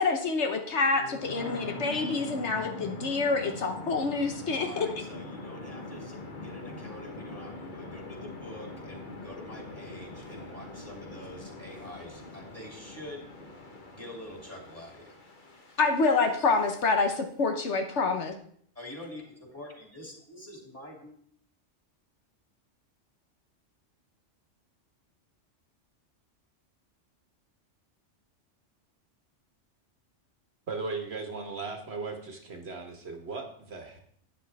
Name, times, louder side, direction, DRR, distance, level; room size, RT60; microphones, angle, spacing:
voice 1, 0.0-4.9 15.8-18.4, left 4 dB, 65° left, 5 dB, 1.3 m, -27 dB
sound 1, 0.9-16.8, left 2 dB, 40° left, 1.4 m, -43 dB
voice 2, 4.6-13.3 13.9-15.1 18.7-21.1, left 1 dB, 10° left, -1 dB, 2.9 m, -46 dB
voice 3, 30.7-34.0, right 4 dB, 60° right, 3 dB, 1.6 m, -37 dB
12.0 x 9.5 x 3.4 m, 0.63 s
omnidirectional pair, 1.3 m